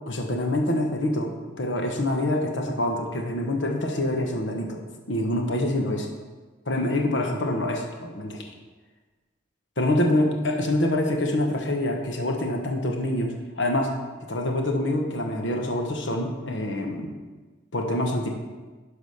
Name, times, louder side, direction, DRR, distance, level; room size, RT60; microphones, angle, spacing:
voice 1, 0.1-4.8 5.1-6.1 6.7-8.5 9.8-13.9 14.3-17.1 17.7-18.3, left 1 dB, 65° left, 2 dB, 1.2 m, -26 dB
11.5 x 5.0 x 5.6 m, 1.3 s
head